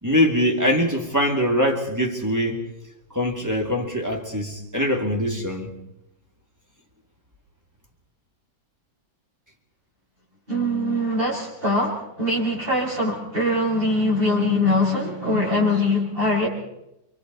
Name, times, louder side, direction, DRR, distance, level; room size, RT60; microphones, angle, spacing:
voice 1, 0.0-2.6 3.1-5.7, equal, 10° right, 1 dB, 2.7 m, -23 dB
voice 2, 10.5-16.5, left 1 dB, 25° right, -6 dB, 7.1 m, -22 dB
29.5 x 24.0 x 4.2 m, 0.86 s
omnidirectional pair, 2.3 m